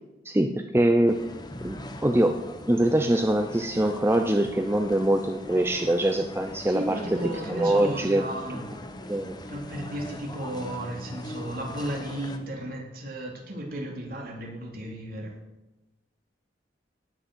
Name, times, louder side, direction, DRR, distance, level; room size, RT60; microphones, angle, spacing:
voice 1, 0.3-1.2 1.6-2.3 2.7-7.0 7.5-8.2 9.1-9.4, right 1 dB, 15° right, 5 dB, 0.6 m, -23 dB
sound 1, 1.1-12.4, left 1 dB, 25° left, 1.1 m, -41 dB
voice 2, 6.7-8.6 9.5-15.3, right 1 dB, 55° right, -1 dB, 3.1 m, -34 dB
17.5 x 6.4 x 6.3 m, 1.0 s
head